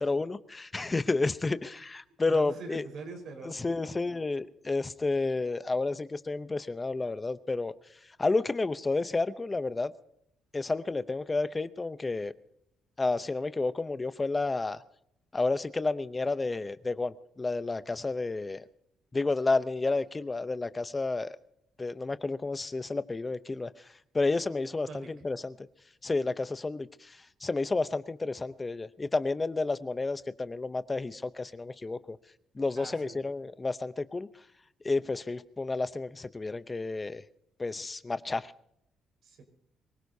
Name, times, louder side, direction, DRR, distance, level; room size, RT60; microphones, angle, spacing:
voice 1, 0.0-2.8 3.4-7.7 8.2-9.9 10.5-12.3 13.0-14.8 15.3-18.6 19.1-21.4 21.8-23.7 24.1-25.5 26.0-32.2 32.6-34.3 34.8-37.2 37.6-38.5, left 3 dB, 25° left, 13 dB, 0.7 m, -31 dB
voice 2, 2.3-3.6 24.9-25.1 32.7-33.2 39.2-39.4, right 4 dB, 70° right, 4 dB, 4.8 m, -43 dB
24.0 x 17.0 x 2.7 m, 0.75 s
cardioid pair, 90°, 0 cm